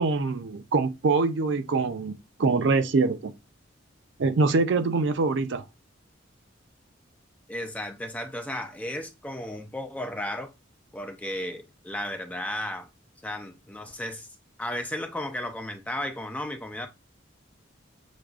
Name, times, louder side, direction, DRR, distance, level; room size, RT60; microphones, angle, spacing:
voice 1, 0.0-2.1 2.4-3.3 4.2-5.6, right 3 dB, 60° right, 0.4 m, -24 dB
voice 2, 7.5-10.5 10.9-12.9 13.2-14.3 14.6-16.9, left 1 dB, 5° left, 0.3 m, -34 dB
6.3 x 2.2 x 2.3 m
head